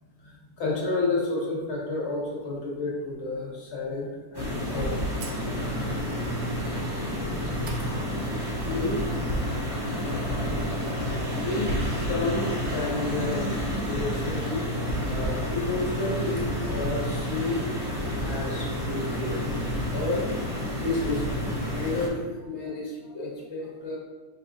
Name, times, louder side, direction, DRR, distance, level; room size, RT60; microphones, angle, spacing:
voice 1, 0.2-6.4 8.6-9.0 10.9-11.1 11.4-13.6 13.9-17.7 18.2-19.4 19.9-20.5 20.8-24.0, left 2 dB, 50° left, -3 dB, 1.0 m, -32 dB
sound 1, 4.3-22.1, equal, 30° right, 0.5 m, -29 dB
sound 2, 5.2-5.9 7.1-7.2 7.7-8.4 8.6-8.7 9.7-9.8 10.0-11.4, right 4 dB, 85° right, 0.5 m, -47 dB
sound 3, 11.2-12.2, left 1 dB, 50° right, 1.8 m, -34 dB
4.9 x 3.5 x 2.6 m, 1.3 s
omnidirectional pair, 1.7 m